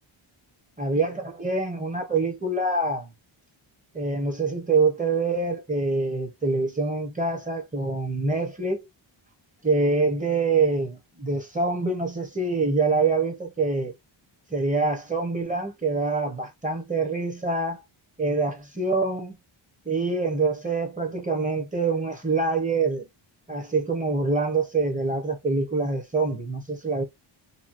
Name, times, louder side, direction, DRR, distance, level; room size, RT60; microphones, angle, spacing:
voice 1, 0.8-3.1 3.9-8.8 9.6-13.9 14.5-17.8 18.2-19.4 19.8-23.0 23.5-27.0, right 3 dB, 15° right, 0.9 m, -25 dB
3.0 x 2.3 x 2.5 m
wide cardioid pair, 110°, 49 cm